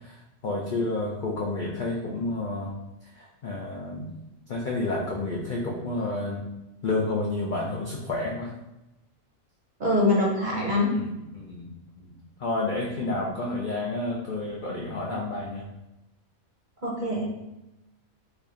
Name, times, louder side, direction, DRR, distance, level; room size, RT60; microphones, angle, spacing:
voice 1, 0.0-2.7 3.2-4.1 4.5-6.4 6.8-8.5 10.9-11.7 12.0-12.1 12.4-15.7, left 2 dB, 65° left, -3 dB, 0.4 m, -30 dB
voice 2, 9.8-10.9 16.8-17.3, left 2 dB, 45° right, -3 dB, 0.7 m, -24 dB
3.2 x 2.4 x 3.8 m, 0.93 s
omnidirectional pair, 1.4 m